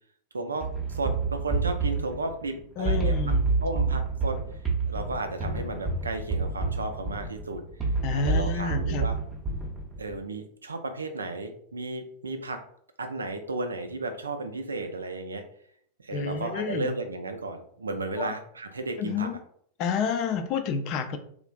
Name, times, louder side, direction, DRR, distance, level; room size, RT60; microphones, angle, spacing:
voice 1, 0.3-3.1 3.6-4.4 4.9-9.1 10.0-12.6 13.0-15.4 16.0-19.3, right 2 dB, 75° right, 7 dB, 0.4 m, -34 dB
sound 1, 0.6-10.2, right 3 dB, 15° right, 0.7 m, -28 dB
voice 2, 2.8-3.5 8.0-9.1 16.1-17.0 18.2-18.3 19.0-19.4 19.8-21.2, left 5 dB, 40° left, 8 dB, 0.3 m, -29 dB
3.1 x 2.4 x 2.2 m, 0.64 s
figure-of-eight pair, 90°, 0 cm